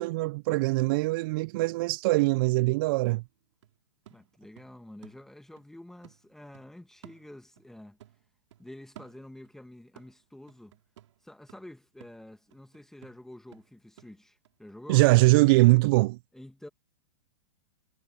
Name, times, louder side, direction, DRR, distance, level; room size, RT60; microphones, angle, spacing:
voice 1, 0.0-3.2 14.9-16.2, right 22 dB, 45° right, 0.4 m, -22 dB
sound 1, 2.6-5.7 6.0-7.7 8.0-9.6 10.0-15.6 16.0-16.1, right 12 dB, 70° right, 2.4 m, -57 dB
voice 2, 4.1-8.0 8.6-10.8 11.2-15.0 16.3-16.7, left 1 dB, 5° left, 1.7 m, -48 dB
hypercardioid pair, 130°, 16 cm